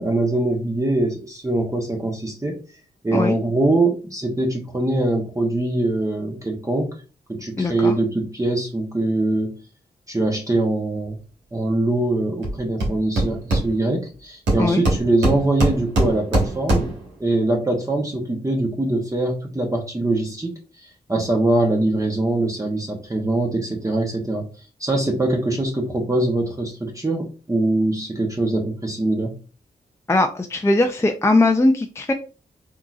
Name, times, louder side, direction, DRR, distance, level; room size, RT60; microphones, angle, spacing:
voice 1, 0.0-2.6 3.0-7.0 7.3-9.5 10.1-11.2 11.5-16.9 17.2-24.4 24.8-29.3, right 2 dB, 15° right, 1 dB, 0.9 m, -23 dB
voice 2, 7.6-7.9 14.6-14.8 30.1-32.1, left 2 dB, 15° left, 4 dB, 0.4 m, -19 dB
Hammer, 12.4-12.5 12.8-14.1 14.5-17.1, right 1 dB, 80° right, 1.5 m, -22 dB
3.7 x 2.8 x 2.4 m, 0.34 s
supercardioid pair, 40°, 18 cm